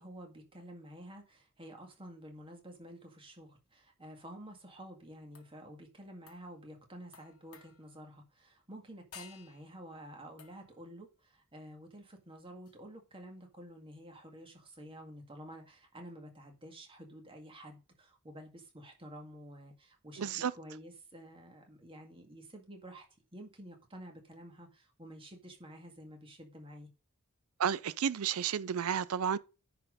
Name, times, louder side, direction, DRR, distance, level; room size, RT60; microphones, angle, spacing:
voice 1, 0.0-23.0 23.3-26.9, equal, 25° right, 2.0 m, -50 dB
sound 1, 5.3-5.6 6.3-6.6 7.1-8.1 9.1-9.8 10.4-10.8 12.7-12.8, left 7 dB, 75° left, 1.5 m, -55 dB
voice 2, 20.2-20.5 27.6-29.4, right 8 dB, 70° right, 0.5 m, -32 dB
10.0 x 4.3 x 5.1 m
head